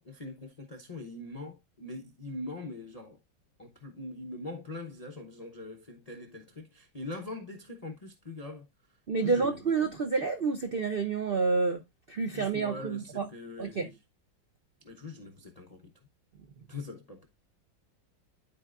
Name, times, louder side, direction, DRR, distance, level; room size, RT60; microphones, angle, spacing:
voice 1, 0.0-3.2 3.6-8.7 9.2-9.6 12.3-13.9 14.8-15.8 16.7-17.3, left 2 dB, 45° left, 0.5 m, -42 dB
voice 2, 9.1-11.8 12.1-13.3 13.6-13.9, right 4 dB, 60° right, 0.5 m, -29 dB
12.0 x 4.3 x 2.4 m
omnidirectional pair, 2.1 m